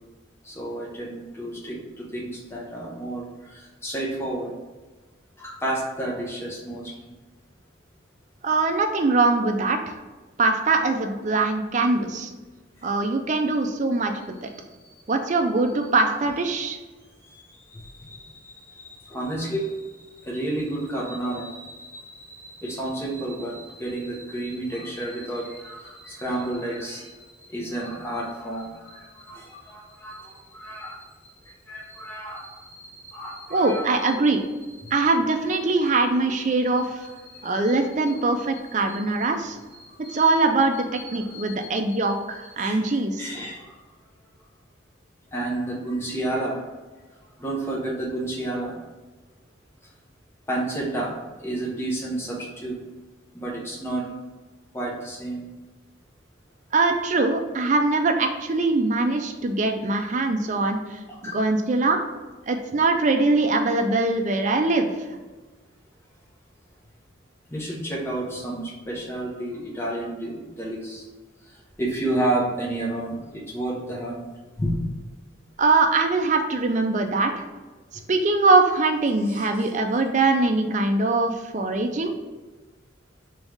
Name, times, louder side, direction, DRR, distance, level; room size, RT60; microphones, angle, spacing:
voice 1, 0.4-3.3 3.5-4.5 5.4-6.9 17.7-19.8 20.2-27.1 27.5-31.0 31.5-34.1 34.8-35.1 35.6-35.7 36.8-39.3 39.8-40.4 40.9-41.6 41.9-42.2 42.6-42.8 43.2-43.7 45.3-46.6 47.4-48.7 50.5-51.1 51.4-52.8 53.3-54.1 54.7-55.4 61.1-61.3 67.5-71.0 71.8-74.2 74.6-74.7 79.2-79.5, right 1 dB, 15° left, -4 dB, 0.9 m, -31 dB
voice 2, 8.4-9.9 10.4-12.3 12.8-14.1 14.4-14.5 15.1-16.8 33.5-34.4 34.9-36.9 37.4-39.6 40.1-40.9 41.1-43.3 56.7-62.0 62.5-64.9 75.6-77.3 78.1-82.1, right 3 dB, 35° right, 5 dB, 0.4 m, -22 dB
3.4 x 3.1 x 4.8 m, 1.2 s
head